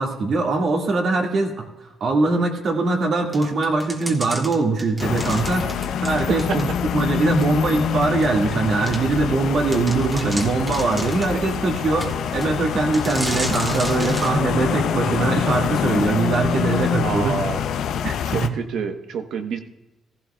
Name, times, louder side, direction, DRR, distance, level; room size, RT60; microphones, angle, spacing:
voice 1, 0.0-1.7 2.0-6.7 6.9-17.4 18.0-18.6, right 3 dB, 60° right, 1 dB, 1.8 m, -22 dB
sound 1, 3.3-7.0 7.4-7.5 8.2-8.3 8.9-9.0 9.4-9.5 9.7-11.4 12.0-12.5 12.9-14.4, right 1 dB, 20° right, 1.5 m, -33 dB
sound 2, 5.0-18.5, left 8 dB, 75° left, 0.6 m, -25 dB
voice 2, 17.0-17.6 18.3-19.6, right 6 dB, 75° right, 7 dB, 0.9 m, -28 dB
15.5 x 14.0 x 2.3 m, 1.0 s
cardioid pair, 90°, 0 cm